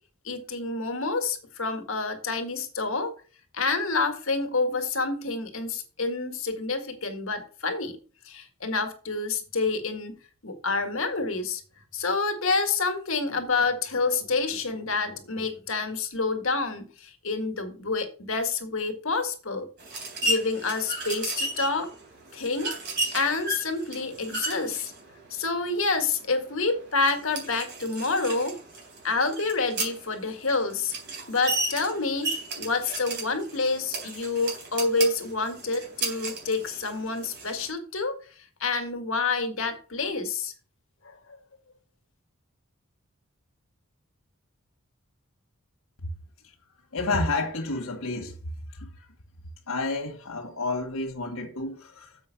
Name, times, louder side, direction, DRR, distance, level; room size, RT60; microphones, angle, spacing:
voice 1, 0.3-3.1 3.5-8.0 8.3-11.6 11.9-19.7 20.2-21.9 22.3-22.8 23.1-24.9 25.3-28.5 29.0-30.9 31.3-32.3 32.6-38.1 38.6-40.5 41.1-41.2, left 3 dB, 65° left, 1.8 m, -28 dB
sound 1, 19.8-37.7, right 2 dB, 55° right, 3.7 m, -34 dB
voice 2, 46.9-48.4 48.7-49.1 49.7-52.2, left 3 dB, 90° left, 1.4 m, -30 dB
7.4 x 5.4 x 5.8 m
head